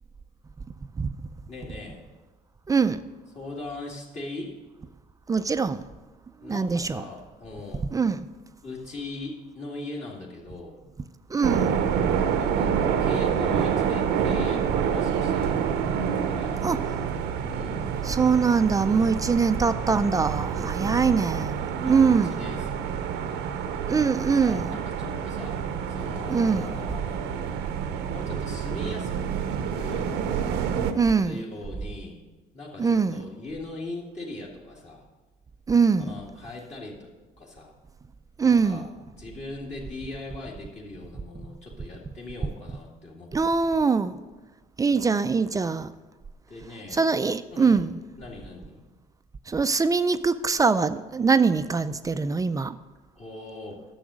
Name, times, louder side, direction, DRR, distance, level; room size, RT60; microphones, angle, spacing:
voice 1, 1.5-2.0 3.3-4.6 6.4-7.9 8.6-10.8 12.4-16.6 17.4-17.9 20.6-21.3 21.8-23.4 24.3-25.6 25.9-27.6 28.1-29.1 29.7-30.1 31.2-32.2 32.5-35.1 36.0-37.1 37.4-37.7 38.4-43.3 44.9-45.4 46.5-47.0 47.5-47.8 48.2-48.8 53.2-53.8, left 2 dB, 40° left, 2.3 m, -39 dB
voice 2, 2.7-3.0 5.3-5.8 6.4-7.0 7.9-8.3 11.3-11.8 16.6-16.8 18.0-22.4 23.9-24.8 26.3-26.7 30.9-31.5 32.8-33.3 35.7-36.1 38.4-38.9 43.3-44.1 44.8-45.9 46.9-48.0 49.5-52.8, right 5 dB, 20° right, 0.4 m, -23 dB
sound 1, 11.4-30.9, right 7 dB, 90° right, 0.9 m, -28 dB
10.5 x 7.0 x 6.3 m
cardioid pair, 110°, 17 cm